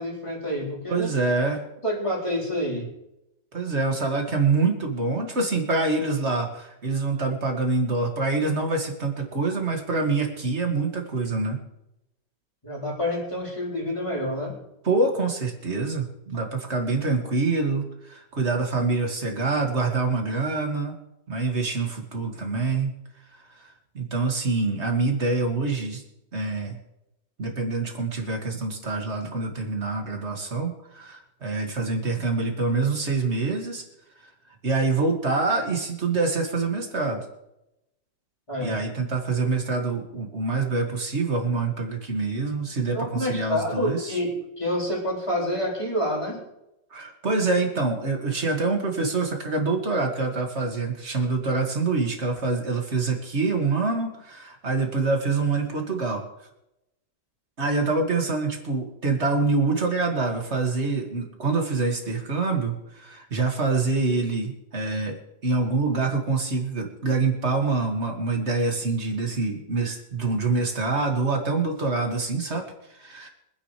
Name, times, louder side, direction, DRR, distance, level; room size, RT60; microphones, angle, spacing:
voice 1, 0.0-1.1 1.8-2.9 12.6-14.6 38.5-38.8 42.9-46.4, equal, 15° left, -4 dB, 4.1 m, -28 dB
voice 2, 0.9-1.6 3.5-11.6 14.8-21.0 21.3-22.9 23.6-23.7 23.9-26.0 26.3-26.8 27.4-33.8 34.6-37.2 38.6-44.1 46.9-56.2 57.6-72.6 73.0-73.3, right 3 dB, 35° right, 2 dB, 2.3 m, -25 dB
25.0 x 10.0 x 3.3 m, 0.88 s
omnidirectional pair, 2.0 m